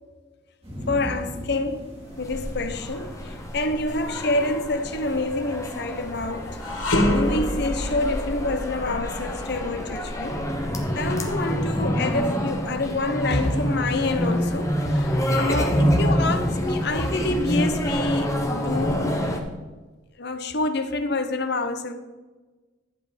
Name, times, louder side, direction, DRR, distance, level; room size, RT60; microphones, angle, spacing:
sound 1, 0.6-8.0, equal, 30° right, 2.8 m, -41 dB
voice 1, 0.9-6.6 7.1-10.5 10.9-19.2 20.2-21.9, left 2 dB, 55° left, 0.8 m, -27 dB
sound 2, 2.1-19.4, equal, 15° left, 1.1 m, -27 dB
sound 3, 6.6-15.9 16.3-16.5 17.3-18.2, left 1 dB, 80° left, 2.1 m, -30 dB
11.0 x 7.8 x 5.1 m
head